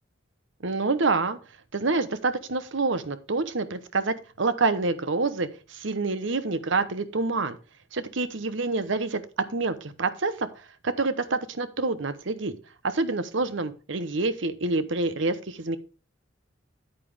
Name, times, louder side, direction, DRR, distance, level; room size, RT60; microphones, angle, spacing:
voice 1, 0.6-1.4 1.7-7.6 7.9-9.2 9.5-10.5 10.8-12.5 12.8-15.8, right 3 dB, 70° right, 12 dB, 0.9 m, -27 dB
9.3 x 8.8 x 3.4 m, 0.34 s
head